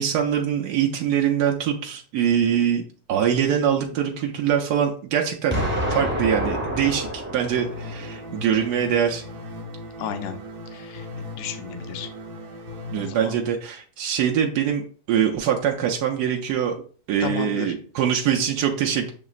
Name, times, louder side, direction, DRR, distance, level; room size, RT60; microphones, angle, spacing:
voice 1, 0.0-5.6 5.9-9.2 12.9-16.8 17.1-19.1, right 8 dB, 85° right, 1 dB, 1.2 m, -23 dB
Explosion, 5.5-8.5, equal, 10° right, 0.7 m, -28 dB
sound 1, 7.5-13.1, left 2 dB, 50° right, 0.7 m, -37 dB
voice 2, 10.0-10.4 10.7-11.1 11.4-12.1 13.0-13.4 17.2-17.7, left 8 dB, 60° left, 8 dB, 0.6 m, -33 dB
7.3 x 2.9 x 2.4 m, 0.43 s
omnidirectional pair, 1.7 m